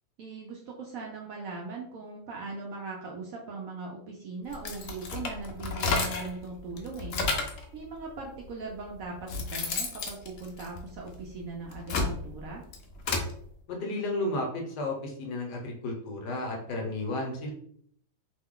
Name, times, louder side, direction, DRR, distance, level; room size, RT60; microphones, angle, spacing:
voice 1, 0.2-7.2 7.7-12.6, right 3 dB, 75° right, -1 dB, 0.8 m, -40 dB
sound 1, 4.5-6.4 6.8-7.6 8.5-8.6 9.0-11.2 11.6-13.3, left 3 dB, 85° left, 0.6 m, -31 dB
voice 2, 13.7-17.5, left 2 dB, 70° left, 1 dB, 1.2 m, -33 dB
3.0 x 2.1 x 3.6 m, 0.64 s
omnidirectional pair, 2.0 m